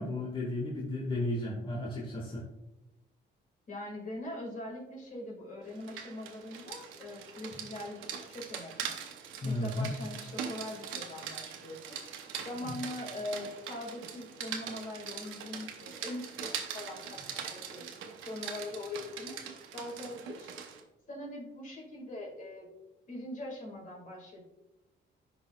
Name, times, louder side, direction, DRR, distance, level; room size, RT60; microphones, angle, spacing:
voice 1, 0.0-2.4 9.4-9.9 12.6-12.7, left 1 dB, 25° left, -2 dB, 1.2 m, -34 dB
voice 2, 3.7-9.0 9.4-12.0 12.4-17.8 18.2-20.5 21.1-22.7 23.1-24.4, left 1 dB, 40° left, -1 dB, 2.0 m, -42 dB
Rain, 5.7-20.8, right 7 dB, 90° right, 0.8 m, -42 dB
11.0 x 4.0 x 2.3 m, 1.0 s
cardioid pair, 90°, 20 cm